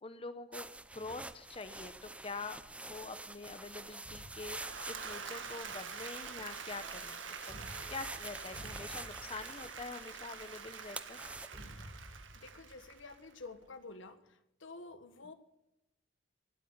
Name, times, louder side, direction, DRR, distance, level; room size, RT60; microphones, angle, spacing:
voice 1, 0.0-2.6 2.9-7.2 7.9-11.2, left 3 dB, 30° left, 10 dB, 0.8 m, -45 dB
sound 1, 0.5-11.5, right 2 dB, 5° right, 0.6 m, -47 dB
sound 2, 4.0-5.4 7.5-10.4 11.5-13.7, equal, 20° right, 4.9 m, -53 dB
Applause / Crowd, 4.2-13.4, right 6 dB, 75° right, 1.7 m, -47 dB
voice 2, 12.3-15.3, left 3 dB, 75° left, 10 dB, 1.6 m, -50 dB
19.0 x 8.4 x 6.7 m, 0.89 s
head